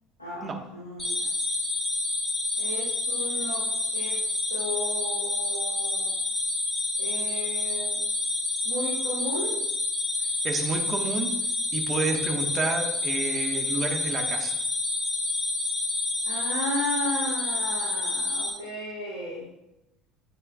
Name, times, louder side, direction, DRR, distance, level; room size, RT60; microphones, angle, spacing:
voice 1, 0.2-1.3 2.6-4.2 4.5-6.1 7.0-8.0 8.6-9.6 16.2-19.5, left 1 dB, 90° left, -8 dB, 1.7 m, -34 dB
sound 1, 1.0-18.5, left 2 dB, 15° left, 3.1 m, -28 dB
voice 2, 10.4-11.3 11.7-14.6, right 3 dB, 35° right, 2 dB, 1.5 m, -30 dB
11.5 x 7.4 x 2.4 m, 0.91 s
figure-of-eight pair, 65°, 0 cm